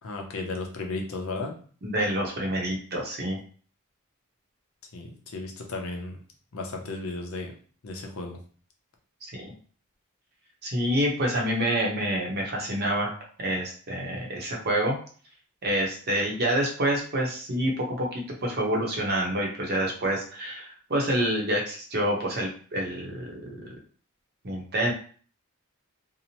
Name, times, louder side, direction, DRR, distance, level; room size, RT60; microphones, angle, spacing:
voice 1, 0.0-1.6 4.9-6.2 6.5-7.5 7.8-8.4, left 3 dB, 65° left, 2 dB, 0.6 m, -34 dB
voice 2, 1.8-3.4 9.3-9.5 10.6-13.1 13.4-15.0 15.6-23.7 24.4-24.9, right 1 dB, 45° right, -1 dB, 0.7 m, -27 dB
2.8 x 2.0 x 2.8 m, 0.43 s
head